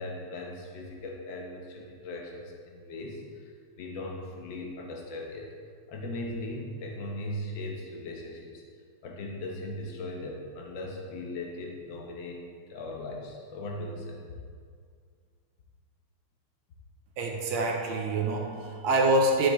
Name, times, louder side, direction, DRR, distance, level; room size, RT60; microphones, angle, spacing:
voice 1, 0.0-5.5 5.9-8.6 9.0-12.4 12.7-14.3, left 1 dB, 55° left, 0 dB, 1.4 m, -38 dB
voice 2, 17.2-19.5, right 2 dB, 70° right, 0 dB, 2.0 m, -26 dB
12.0 x 6.2 x 3.2 m, 2.1 s
omnidirectional pair, 3.3 m